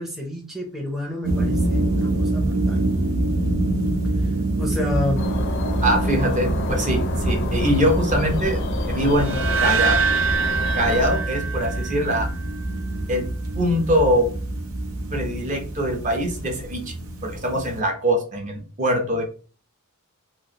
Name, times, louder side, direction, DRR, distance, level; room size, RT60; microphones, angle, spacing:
voice 1, 0.0-2.9 4.2-4.3 4.6-5.3, left 2 dB, ahead, -1 dB, 0.5 m, -30 dB
sound 1, 1.2-17.8, right 2 dB, 85° right, 0.7 m, -25 dB
sound 2, 5.2-11.1, left 3 dB, 60° left, 0.5 m, -30 dB
voice 2, 5.8-8.6 8.9-10.0 10.7-12.3 13.1-13.3 13.6-14.3 15.1-16.9 17.2-19.2, equal, 35° right, 3 dB, 0.7 m, -23 dB
sound 3, 9.2-12.3, right 6 dB, 60° right, 0.3 m, -24 dB
3.0 x 2.5 x 2.8 m, 0.37 s
head